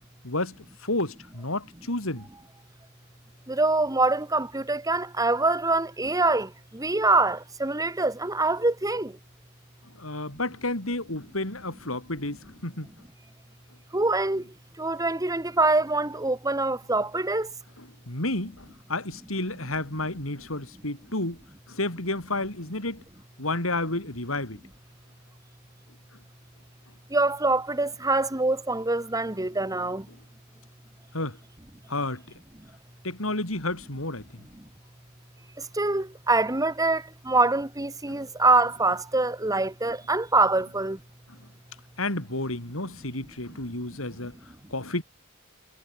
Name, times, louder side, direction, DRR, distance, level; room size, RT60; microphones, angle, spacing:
voice 1, 0.2-0.5 0.8-2.2 10.0-12.9 18.1-21.4 21.7-23.0 23.4-24.6 31.1-31.4 31.9-32.2 33.0-34.2 38.1-38.2 42.0-44.3 44.7-45.0, left 2 dB, 75° left, 6.3 m, -31 dB
voice 2, 3.5-9.1 13.9-14.4 14.8-17.5 27.1-30.0 35.8-41.0, right 2 dB, 15° right, 1.6 m, -24 dB
head